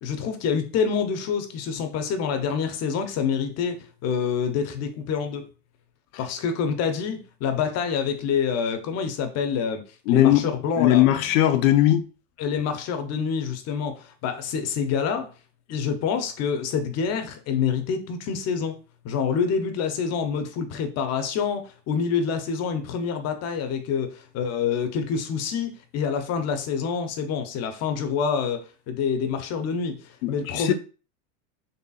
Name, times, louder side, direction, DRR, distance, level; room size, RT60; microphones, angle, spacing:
voice 1, 0.0-5.5 6.2-9.8 10.1-11.0 12.4-15.3 15.7-18.7 19.0-30.0 30.3-30.7, left 6 dB, 40° left, 0.7 m, -27 dB
voice 2, 10.1-10.5 10.8-12.1 30.2-30.7, left 13 dB, 85° left, 0.7 m, -19 dB
4.1 x 3.3 x 2.3 m
supercardioid pair, 125°, 39 cm